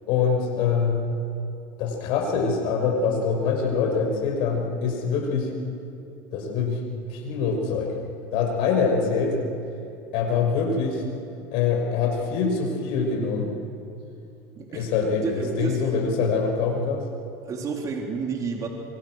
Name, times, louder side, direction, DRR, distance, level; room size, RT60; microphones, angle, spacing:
voice 1, 0.1-1.0 1.8-5.5 6.3-6.8 7.1-7.9 8.3-9.4 10.1-11.0 11.5-13.5 14.7-17.0, left 5 dB, 65° left, 2 dB, 6.0 m, -24 dB
voice 2, 14.6-14.9 15.2-15.9 17.4-18.7, right 5 dB, 40° right, 1 dB, 3.4 m, -31 dB
26.0 x 24.0 x 6.3 m, 2.7 s
supercardioid pair, 105°, 9 cm